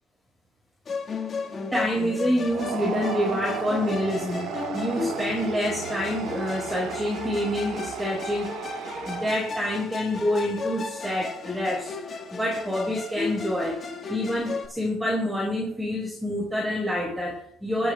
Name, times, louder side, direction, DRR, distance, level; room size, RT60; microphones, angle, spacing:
Musical instrument, 0.9-14.7, left 4 dB, 35° left, 1.8 m, -34 dB
voice 1, 1.7-8.6 9.0-11.9 12.3-13.8 14.1-17.9, left 1 dB, 5° right, -4 dB, 4.6 m, -27 dB
sound 1, 2.4-9.6, right 10 dB, 80° right, 0.8 m, -35 dB
26.5 x 10.5 x 2.4 m, 0.64 s
cardioid pair, 140°, 0 cm